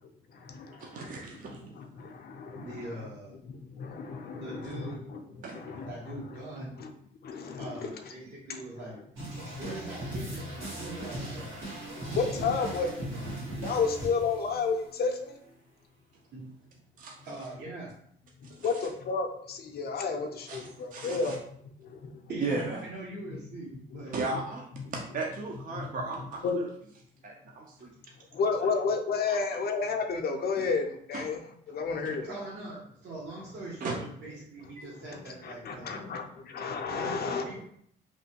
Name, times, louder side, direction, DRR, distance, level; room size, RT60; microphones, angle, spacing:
voice 1, 0.8-1.7 5.4-5.8 17.0-17.2 18.4-18.7 20.5-21.4 22.4-22.8 24.1-24.7 24.9-26.7 27.2-27.9 28.6-28.7 29.3-29.4 31.1-31.2 33.8-33.9, right 3 dB, 45° right, 1 dB, 0.5 m, -36 dB
voice 2, 2.6-3.4 4.4-5.0 5.9-6.8 7.6-9.0 9.6-11.6 12.3-13.3 16.3-16.5 17.2-17.9 22.3-24.1 32.2-36.1 36.8-37.6, right 2 dB, 60° right, -6 dB, 0.8 m, -42 dB
voice 3, 3.8-5.2 5.5-6.2 7.3-7.9 12.2-12.9 13.6-15.3 18.6-21.3 24.3-24.4 26.4-26.6 28.4-30.8 31.1-31.4 31.7-32.3 35.4-36.2 36.5-37.6, left 5 dB, 55° left, 4 dB, 0.5 m, -31 dB
sound 1, 9.1-15.2, right 1 dB, 90° right, 1.3 m, -38 dB
3.1 x 2.1 x 2.8 m, 0.67 s
cardioid pair, 90°, 20 cm